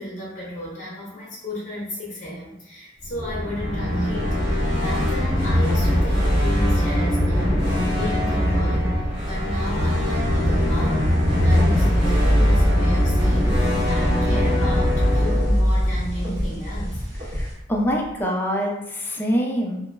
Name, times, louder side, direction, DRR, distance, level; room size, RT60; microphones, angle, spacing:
voice 1, 0.0-7.6 8.0-8.9 9.2-11.1 11.4-17.0, equal, 40° left, -5 dB, 0.7 m, -32 dB
sound 1, 3.0-17.0, equal, 25° right, 1.2 m, -21 dB
sound 2, 9.9-17.5, equal, 45° right, 0.7 m, -31 dB
voice 2, 17.3-19.8, equal, 10° left, -1 dB, 0.3 m, -25 dB
2.9 x 2.2 x 2.2 m, 0.85 s
head